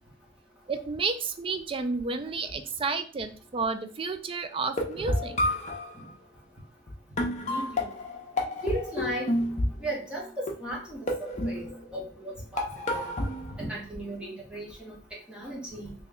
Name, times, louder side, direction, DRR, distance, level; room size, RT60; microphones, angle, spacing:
voice 1, 0.7-5.4, right 4 dB, 30° right, 9 dB, 0.3 m, -31 dB
sound 1, 4.6-5.9 6.9-7.0 7.2-9.9 10.5-10.8 11.1-12.1 12.6-13.6, left 1 dB, 40° left, 0.8 m, -30 dB
voice 2, 7.5-7.9 8.6-9.3 9.8-11.7 11.9-13.1 13.6-14.9 15.3-15.9, right 1 dB, 5° right, -4 dB, 1.0 m, -36 dB
3.0 x 2.9 x 3.5 m, 0.39 s
head